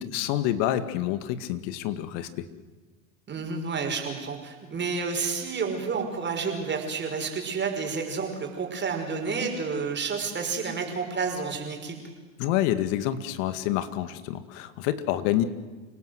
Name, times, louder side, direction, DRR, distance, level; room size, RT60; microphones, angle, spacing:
voice 1, 0.0-2.5 12.4-15.4, left 12 dB, 60° left, 12 dB, 2.0 m, -27 dB
voice 2, 3.3-12.0, right 5 dB, 25° right, 3 dB, 5.4 m, -30 dB
29.0 x 18.0 x 7.9 m, 1.4 s
hypercardioid pair, 100°, 41 cm